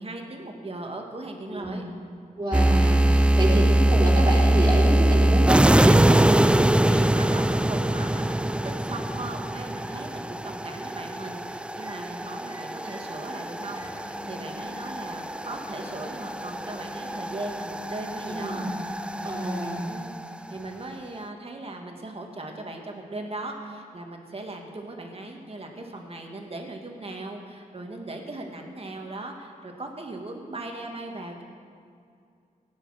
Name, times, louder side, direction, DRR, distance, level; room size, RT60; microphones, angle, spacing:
voice 1, 0.0-1.8 3.0-3.3 6.9-20.1 20.5-31.4, right 2 dB, 40° right, 2 dB, 1.9 m, -38 dB
voice 2, 2.4-6.3 18.3-18.7 19.2-19.9, right 1 dB, 25° right, -6 dB, 3.4 m, -28 dB
sound 1, 2.5-20.3, right 1 dB, 5° right, 0.3 m, -23 dB
sound 2, 11.8-12.0 12.5-13.1 13.4-13.5 13.7-20.0, left 3 dB, 50° left, 4.2 m, -45 dB
17.0 x 9.8 x 6.4 m, 2.3 s
wide cardioid pair, 100°, 15 cm